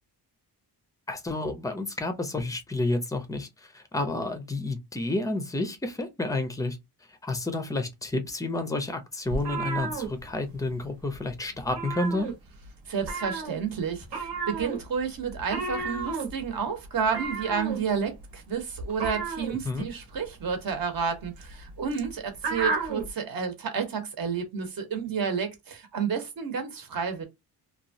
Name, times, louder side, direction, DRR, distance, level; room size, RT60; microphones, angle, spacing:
voice 1, 1.1-6.8 7.1-12.3 19.6-19.9, left 2 dB, 10° left, 0.4 m, -30 dB
sound 1, 9.3-10.8 11.0-11.3 11.6-12.7 13.0-23.1, right 4 dB, 80° right, 1.1 m, -33 dB
voice 2, 12.9-27.2, right 6 dB, 55° right, 0.9 m, -30 dB
2.9 x 2.3 x 2.6 m
wide cardioid pair, 175°, 41 cm